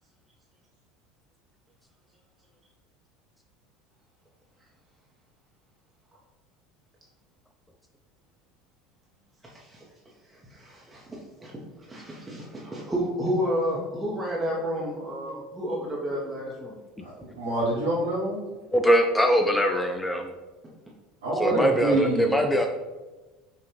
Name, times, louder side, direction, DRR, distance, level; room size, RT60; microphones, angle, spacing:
voice 1, 9.4-9.8 10.3-11.6 11.9-16.8, equal, 15° right, -4 dB, 0.8 m, -31 dB
voice 2, 17.0-18.4 21.2-22.3, right 1 dB, 70° right, -5 dB, 1.0 m, -26 dB
voice 3, 18.7-20.3 21.4-22.7, equal, 5° left, 4 dB, 0.3 m, -22 dB
5.6 x 2.5 x 3.0 m, 1.2 s
figure-of-eight pair, 70°, 0 cm